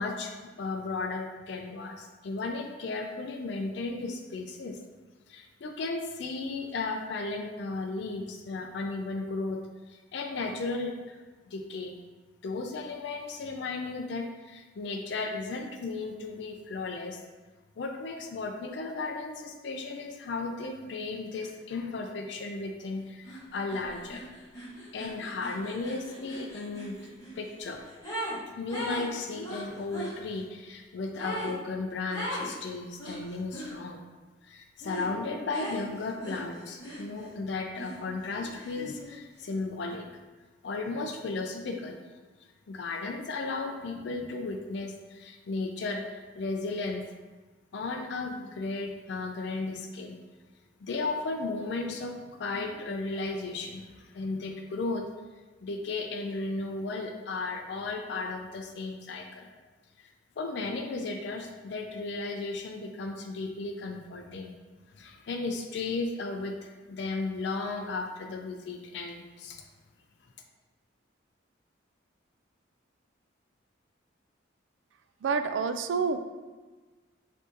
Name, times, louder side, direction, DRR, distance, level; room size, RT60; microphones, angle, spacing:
voice 1, 0.0-4.8 5.3-9.6 9.9-11.2 11.5-12.0 12.4-17.2 17.8-24.2 24.9-27.0 27.4-27.8 28.6-34.0 34.4-40.1 40.6-42.0 42.7-46.0 46.4-47.1 47.7-50.2 50.8-55.1 55.6-59.5 60.4-64.5 65.0-69.6, left 3 dB, 60° left, 3 dB, 0.4 m, -35 dB
sound 1, 23.3-23.4 23.7-28.4 28.7-30.2 31.2-31.6 32.1-32.5 33.0-33.7 34.8-35.1 35.5-37.4 37.8-39.1, equal, 15° left, 1.3 m, -39 dB
voice 2, 75.2-76.2, right 5 dB, 75° right, 9 dB, 0.3 m, -28 dB
4.8 x 2.7 x 3.8 m, 1.3 s
head